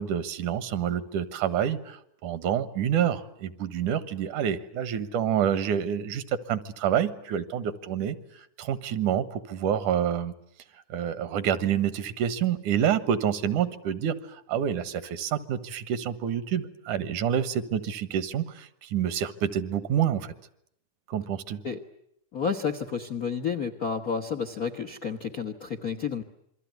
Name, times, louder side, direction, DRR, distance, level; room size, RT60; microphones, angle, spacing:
voice 1, 0.0-8.2 8.6-10.3 10.9-20.3 21.1-21.6, right 9 dB, 75° right, 15 dB, 2.7 m, -28 dB
voice 2, 22.3-26.2, left 6 dB, 55° left, 10 dB, 1.0 m, -30 dB
27.5 x 23.0 x 9.3 m, 0.72 s
omnidirectional pair, 3.6 m